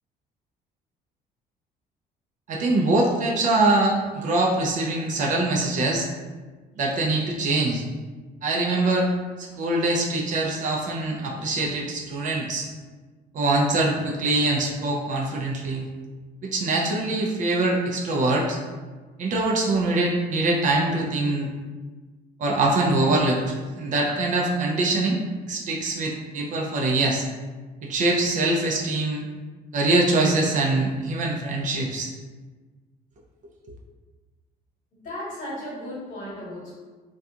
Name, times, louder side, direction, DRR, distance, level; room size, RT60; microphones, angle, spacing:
voice 1, 2.5-6.1 6.8-7.9 8.4-9.1 9.4-12.7 13.3-15.9 16.4-18.6 19.2-21.5 22.4-25.2 25.5-27.3 27.8-29.3 29.7-32.1, right 2 dB, 50° right, -1 dB, 0.4 m, -23 dB
voice 2, 34.9-36.8, left 1 dB, 55° left, -7 dB, 1.2 m, -35 dB
2.3 x 2.3 x 2.7 m, 1.3 s
cardioid pair, 110°, 17 cm